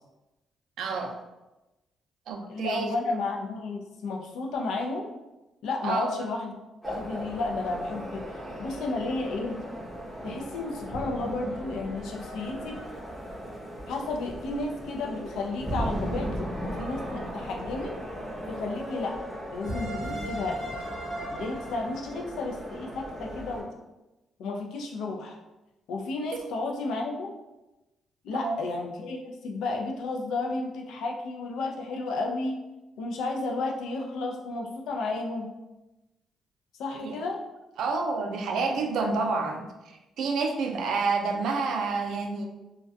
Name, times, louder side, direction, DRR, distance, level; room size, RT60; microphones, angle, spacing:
voice 1, 0.8-1.2 2.3-2.9 5.8-6.2 28.3-28.6 37.0-37.2 37.8-42.5, right 4 dB, 80° right, 3 dB, 0.3 m, -29 dB
voice 2, 2.5-5.1 5.6-6.6 6.9-9.6 10.2-12.8 13.9-18.0 18.5-19.2 19.5-20.6 21.3-23.7 24.4-25.4 25.9-27.3 28.2-32.6 33.0-35.5 36.8-37.4, left 3 dB, 85° left, 1 dB, 0.4 m, -32 dB
sound 1, 6.8-23.6, equal, ahead, 0.7 m, -36 dB
2.2 x 2.2 x 2.6 m, 1.0 s
cardioid pair, 125°, 0 cm